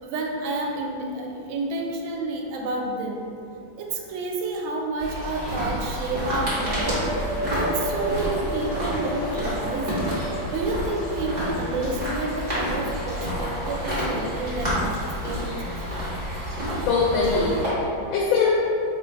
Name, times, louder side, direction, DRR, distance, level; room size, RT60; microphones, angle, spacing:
voice 1, 0.0-3.3 3.7-7.2 7.5-10.1 10.5-15.8, right 2 dB, 85° right, 1 dB, 1.4 m, -30 dB
sound 1, 5.0-17.7, equal, 25° right, 1.1 m, -29 dB
sound 2, 6.4-14.0, right 1 dB, 55° left, 1.2 m, -34 dB
voice 2, 16.9-18.5, left 4 dB, 85° left, -3 dB, 1.4 m, -22 dB
3.3 x 2.5 x 4.5 m, 2.5 s
omnidirectional pair, 2.1 m